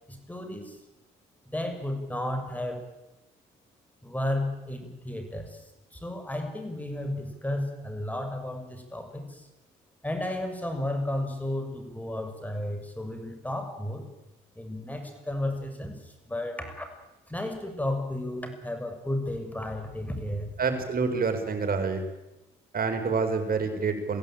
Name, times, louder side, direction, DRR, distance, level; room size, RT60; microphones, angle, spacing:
voice 1, 0.1-0.8 1.5-2.9 4.0-9.5 10.0-14.1 14.6-16.9 17.3-20.5, left 1 dB, 10° left, 5 dB, 6.2 m, -33 dB
voice 2, 20.6-22.0 22.7-24.2, right 4 dB, 50° right, 7 dB, 4.9 m, -27 dB
23.0 x 16.0 x 8.9 m, 0.98 s
cardioid pair, 90°, 20 cm